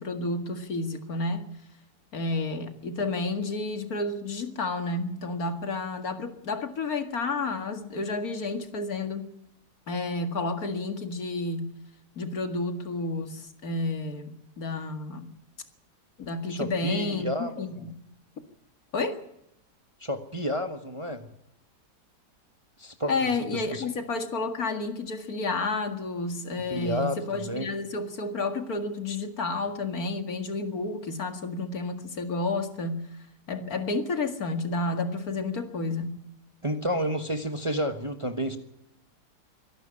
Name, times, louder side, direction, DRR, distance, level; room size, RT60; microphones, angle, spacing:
voice 1, 0.0-1.5 2.1-9.3 9.9-11.7 12.2-15.3 16.2-18.0 18.9-19.2 23.1-33.0 33.5-36.2, left 3 dB, 60° left, 7 dB, 2.4 m, -31 dB
voice 2, 16.5-17.8 20.0-21.3 22.8-23.8 26.7-27.7 36.6-38.6, equal, 20° right, 7 dB, 1.2 m, -31 dB
24.0 x 11.5 x 9.8 m, 0.83 s
omnidirectional pair, 1.8 m